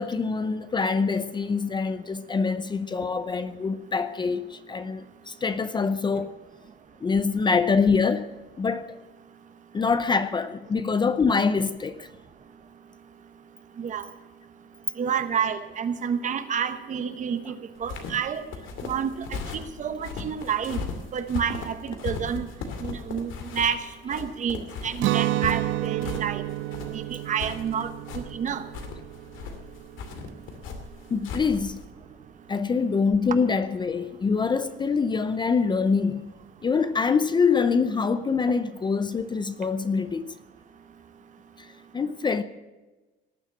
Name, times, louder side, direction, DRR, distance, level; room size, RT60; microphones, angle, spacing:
voice 1, 0.0-6.3 7.0-9.0 9.7-12.1 17.4-17.5 31.1-31.8 32.5-36.3 36.6-40.3 41.6-41.7 41.9-42.4, left 5 dB, 25° left, 0.6 m, -25 dB
voice 2, 15.0-18.4 18.8-20.8 21.1-22.5 22.8-26.4 26.9-27.9 28.1-28.6, right 7 dB, 40° right, 1.1 m, -29 dB
sound 1, 17.8-31.9, left 5 dB, 85° left, 2.4 m, -37 dB
Guitar, 25.0-30.8, right 15 dB, 80° right, 0.6 m, -31 dB
18.5 x 7.4 x 9.1 m
cardioid pair, 160°, 20 cm